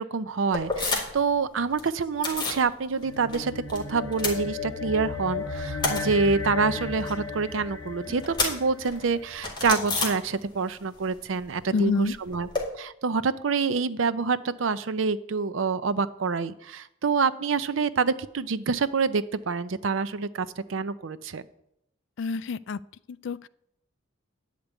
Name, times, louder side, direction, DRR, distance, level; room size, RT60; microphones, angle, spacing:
voice 1, 0.0-12.5 12.8-21.4, right 4 dB, 70° right, 14 dB, 0.5 m, -27 dB
sound 1, 0.5-1.3 1.6-2.7 3.0-5.1 5.4-10.8 11.0-12.6, left 3 dB, 20° left, 2.0 m, -32 dB
sound 2, 2.9-9.5, left 4 dB, 90° left, 1.5 m, -35 dB
voice 2, 11.7-12.1 22.2-22.8 23.1-23.5, left 4 dB, 60° left, 18 dB, 0.3 m, -27 dB
10.0 x 5.2 x 8.2 m, 0.76 s
head